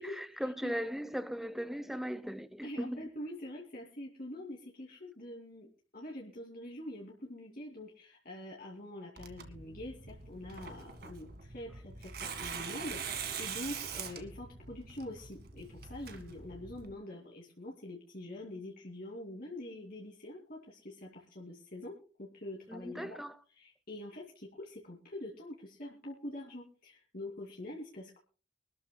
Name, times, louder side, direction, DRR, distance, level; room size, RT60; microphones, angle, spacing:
voice 1, 0.0-3.0 22.7-23.4, equal, ahead, 0.6 m, -38 dB
voice 2, 2.6-5.7 5.9-12.1 12.4-23.2 23.6-28.2, left 1 dB, 45° left, 2.6 m, -45 dB
Tearing, 9.2-16.9, right 6 dB, 50° right, 1.9 m, -43 dB
25.0 x 13.0 x 2.3 m
head